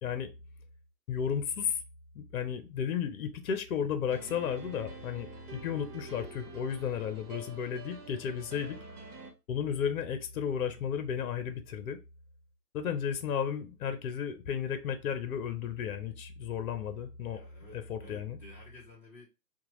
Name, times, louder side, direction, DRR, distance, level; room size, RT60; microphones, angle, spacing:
voice 1, 1.1-1.8 2.1-8.8 9.5-12.0 12.7-17.4 17.7-18.4, left 8 dB, 60° left, 0.7 m, -33 dB
sound 1, 4.1-9.3, right 3 dB, 70° right, 1.1 m, -47 dB
voice 2, 17.3-19.2, left 2 dB, 5° left, 0.6 m, -53 dB
2.9 x 2.3 x 2.9 m
hypercardioid pair, 135°, 49 cm